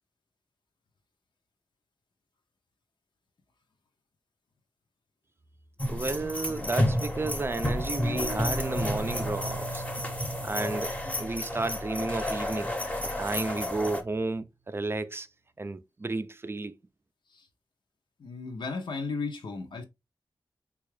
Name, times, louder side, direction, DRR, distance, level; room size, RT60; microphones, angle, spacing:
sound 1, 5.8-14.0, left 1 dB, 15° left, 0.8 m, -31 dB
voice 1, 5.9-9.8 10.4-12.7 13.0-15.3 15.6-16.7, right 3 dB, 30° right, 0.4 m, -32 dB
sound 2, 8.5-13.8, right 5 dB, 75° right, 0.6 m, -43 dB
voice 2, 18.2-19.8, left 4 dB, 75° left, 0.6 m, -35 dB
3.6 x 2.3 x 3.1 m
wide cardioid pair, 75°, 8 cm